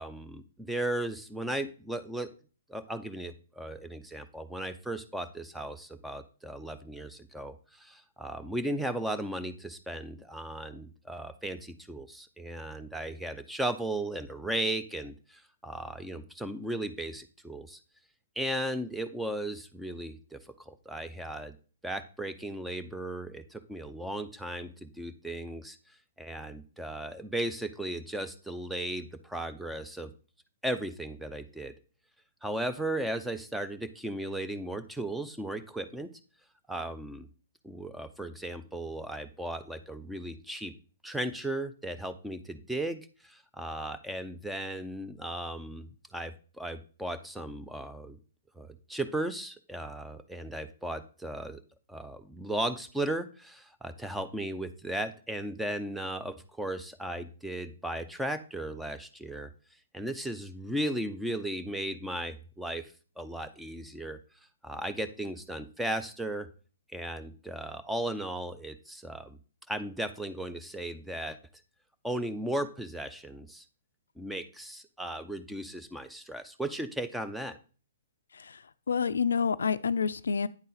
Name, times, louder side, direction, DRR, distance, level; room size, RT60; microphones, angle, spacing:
voice 1, 0.0-2.3 2.7-17.8 18.4-20.4 20.7-21.6 21.8-25.8 26.2-30.1 30.6-31.7 32.4-36.1 36.7-37.3 37.6-40.7 41.0-48.2 48.6-51.6 51.9-59.5 59.9-64.2 64.6-66.5 66.9-69.4 69.7-71.4 72.0-73.6 74.2-77.6, right 1 dB, 5° right, 10 dB, 0.5 m, -36 dB
voice 2, 78.9-80.5, left 6 dB, 80° left, 15 dB, 0.3 m, -28 dB
9.3 x 4.0 x 3.9 m, 0.38 s
hypercardioid pair, 135°, 0 cm